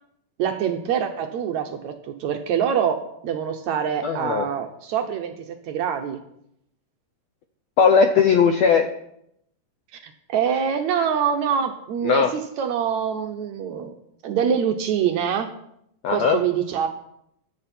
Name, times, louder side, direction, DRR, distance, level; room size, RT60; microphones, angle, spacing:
voice 1, 0.4-6.2 9.9-14.0 14.2-15.5 16.1-16.9, right 8 dB, 70° right, 6 dB, 1.9 m, -25 dB
voice 2, 4.0-4.5 7.8-8.9 12.0-12.3 16.0-16.4, left 6 dB, 80° left, 6 dB, 1.5 m, -18 dB
16.0 x 11.0 x 4.4 m, 0.76 s
omnidirectional pair, 4.0 m